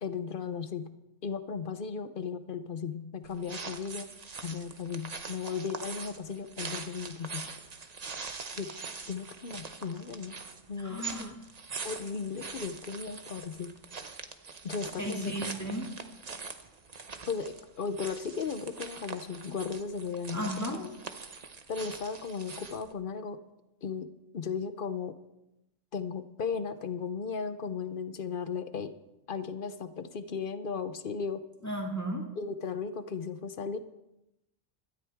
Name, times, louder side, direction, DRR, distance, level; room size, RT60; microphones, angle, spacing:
voice 1, 0.0-0.9 1.2-4.1 4.4-7.5 8.5-8.7 9.1-10.4 10.7-11.4 11.8-13.7 14.6-15.4 15.8-15.9 17.3-21.0 21.7-23.4 23.8-25.2 25.9-28.9 29.3-31.4 32.4-33.8, left 5 dB, 45° left, 11 dB, 0.9 m, -36 dB
sound 1, 3.2-22.9, right 4 dB, 35° right, 0.8 m, -43 dB
voice 2, 10.8-11.3 15.0-15.9 20.3-20.8 31.6-32.3, right 1 dB, 10° left, -1 dB, 2.1 m, -34 dB
17.0 x 13.0 x 3.6 m, 0.90 s
omnidirectional pair, 1.4 m